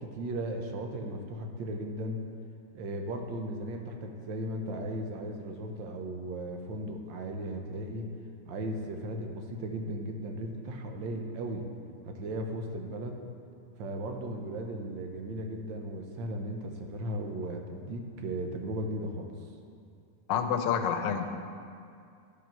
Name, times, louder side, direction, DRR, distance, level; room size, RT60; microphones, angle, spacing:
voice 1, 0.0-2.2 2.7-8.1 8.5-11.6 12.1-13.2 13.8-19.3, right 1 dB, 80° right, 3 dB, 1.5 m, -36 dB
voice 2, 20.3-21.3, left 7 dB, 80° left, 7 dB, 1.3 m, -28 dB
11.0 x 5.1 x 4.4 m, 2.4 s
omnidirectional pair, 2.0 m